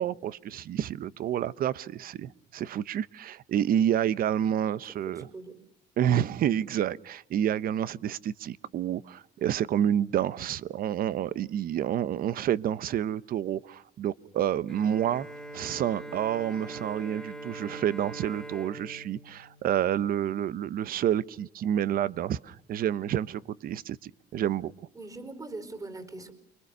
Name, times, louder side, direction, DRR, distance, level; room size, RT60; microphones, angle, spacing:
voice 1, 0.0-5.3 6.0-15.3 15.5-24.7, right 10 dB, 60° right, 18 dB, 0.9 m, -29 dB
voice 2, 4.9-5.6 24.9-26.3, right 2 dB, 20° right, 11 dB, 4.4 m, -42 dB
Bowed string instrument, 14.7-20.4, right 2 dB, ahead, 2.8 m, -43 dB
29.5 x 24.0 x 6.8 m, 0.70 s
cardioid pair, 110°, 17 cm